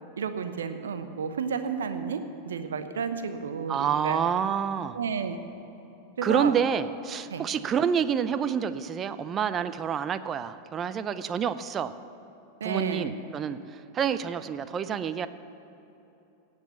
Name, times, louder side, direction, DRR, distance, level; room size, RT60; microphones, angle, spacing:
voice 1, 0.2-4.3 4.9-5.4 6.2-6.5 7.3-7.5 12.6-13.2, right 6 dB, 65° right, 9 dB, 0.9 m, -31 dB
voice 2, 3.7-5.0 6.2-11.9 12.6-13.6 13.9-15.3, right 7 dB, 25° right, 13 dB, 0.6 m, -28 dB
17.5 x 8.1 x 7.1 m, 3.0 s
figure-of-eight pair, 90°, 0 cm